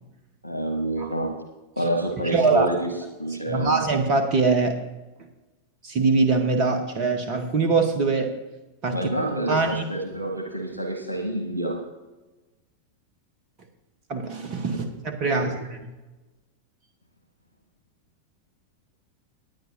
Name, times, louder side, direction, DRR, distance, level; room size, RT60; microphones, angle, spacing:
voice 1, 0.4-1.4 1.8-2.9 3.2-3.8 8.9-11.8 15.3-15.5, right 1 dB, 85° right, 5 dB, 1.2 m, -28 dB
voice 2, 2.3-2.7 3.5-4.8 5.8-8.3 8.8-9.0 9.5-9.8 14.1-15.8, right 3 dB, 35° right, 6 dB, 1.2 m, -23 dB
19.5 x 9.5 x 2.8 m, 1.1 s
figure-of-eight pair, 90°, 0 cm